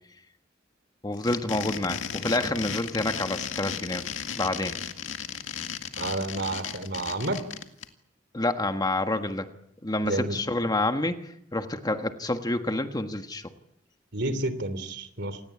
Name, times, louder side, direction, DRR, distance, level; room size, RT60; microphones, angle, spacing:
voice 1, 1.0-4.0 4.4-4.8 8.3-9.5 9.8-11.2 11.5-13.5, left 2 dB, 20° left, 7 dB, 1.4 m, -28 dB
sound 1, 1.1-7.9, left 7 dB, 90° left, 2.0 m, -35 dB
voice 2, 6.0-7.4 10.0-10.4 14.1-15.4, right 2 dB, 65° right, 13 dB, 3.2 m, -30 dB
28.0 x 19.0 x 8.5 m, 0.79 s
head